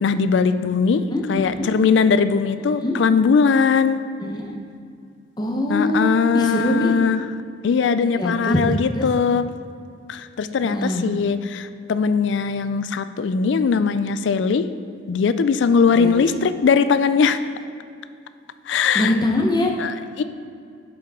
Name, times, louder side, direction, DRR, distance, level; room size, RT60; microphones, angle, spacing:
voice 1, 0.0-1.0 1.3-4.0 5.7-7.2 7.6-9.5 10.1-14.7 15.1-17.4 18.7-19.1 19.8-20.2, left 5 dB, 65° left, 12 dB, 0.4 m, -20 dB
voice 2, 1.1-1.7 2.8-3.0 4.2-4.5 5.4-6.9 8.1-8.6 8.9-9.1 10.6-11.1 16.0-16.4 18.9-19.7, left 1 dB, 20° left, 1 dB, 0.8 m, -23 dB
8.9 x 7.2 x 3.6 m, 2.4 s
head